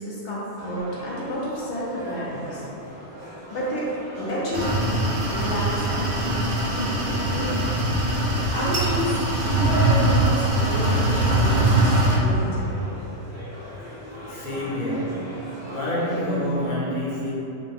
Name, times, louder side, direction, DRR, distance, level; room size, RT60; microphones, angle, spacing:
voice 1, 0.0-2.7 3.5-6.3 6.8-7.8 8.2-8.3 8.5-12.8, equal, 75° left, -7 dB, 1.1 m, -30 dB
sound 1, 0.6-16.7, equal, 65° right, 1.1 m, -40 dB
sound 2, 4.5-12.2, right 1 dB, 45° right, 0.7 m, -22 dB
voice 2, 14.3-17.3, equal, 50° left, -8 dB, 0.9 m, -27 dB
4.2 x 2.2 x 3.5 m, 2.9 s
omnidirectional pair, 1.2 m